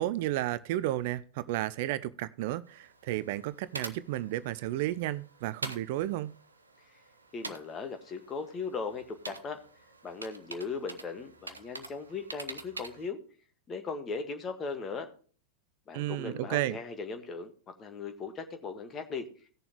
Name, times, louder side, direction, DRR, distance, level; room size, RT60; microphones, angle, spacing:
voice 1, 0.0-6.4 15.9-16.8, right 15 dB, 50° right, 0.4 m, -32 dB
sound 1, 2.7-13.1, right 3 dB, 80° right, 0.9 m, -46 dB
voice 2, 7.3-9.6 10.0-13.2 13.7-15.1 15.9-19.5, left 4 dB, 25° left, 1.7 m, -38 dB
18.0 x 6.9 x 3.1 m
figure-of-eight pair, 90°, 0 cm